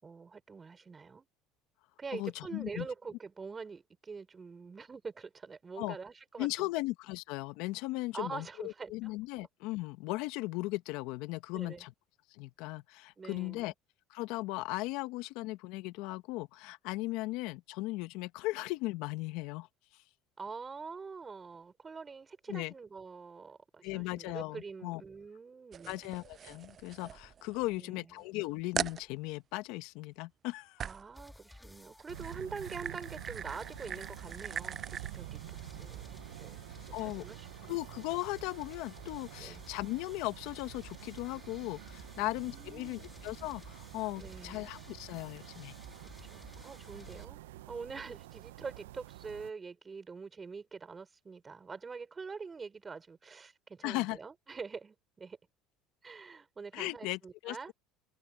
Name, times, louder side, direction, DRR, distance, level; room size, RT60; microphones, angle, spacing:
voice 1, 0.0-1.3 2.0-6.7 8.1-9.1 11.5-11.9 13.2-13.7 20.4-26.0 27.7-28.1 30.8-36.6 37.0-37.8 39.4-39.7 42.2-43.1 44.2-44.7 46.2-47.4 47.7-55.4 56.0-57.7, right 5 dB, 25° right, 4.7 m, -45 dB
voice 2, 2.1-2.9 5.8-6.0 6.4-11.9 12.3-13.7 14.1-19.7 22.5-22.7 23.8-25.0 25.9-30.8 36.9-37.2 37.7-45.7 53.8-54.2 56.7-57.7, left 20 dB, 70° left, 1.5 m, -37 dB
sound 1, 25.7-27.8 28.2-28.3 28.8-29.0 30.8-31.1 31.9-35.2, right 8 dB, 40° right, 0.4 m, -41 dB
sound 2, 31.1-47.3, left 1 dB, 10° left, 1.8 m, -54 dB
sound 3, 32.1-49.5, right 16 dB, 85° right, 0.6 m, -49 dB
hypercardioid pair, 85°, 0 cm